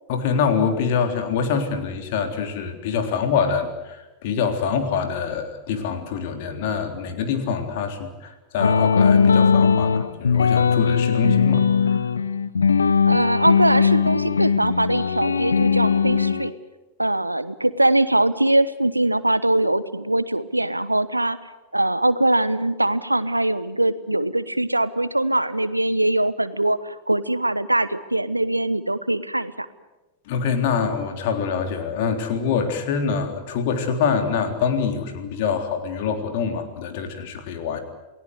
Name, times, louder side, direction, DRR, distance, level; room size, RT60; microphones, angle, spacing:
voice 1, 0.1-12.0 30.3-37.8, left 6 dB, 50° left, 6 dB, 3.6 m, -25 dB
sound 1, 8.6-16.5, left 6 dB, 75° left, 0.9 m, -19 dB
voice 2, 13.1-16.5 17.0-21.4 21.7-29.7, right 1 dB, 85° right, 15 dB, 1.1 m, -22 dB
29.0 x 19.0 x 8.1 m, 1.1 s
figure-of-eight pair, 90°, 0 cm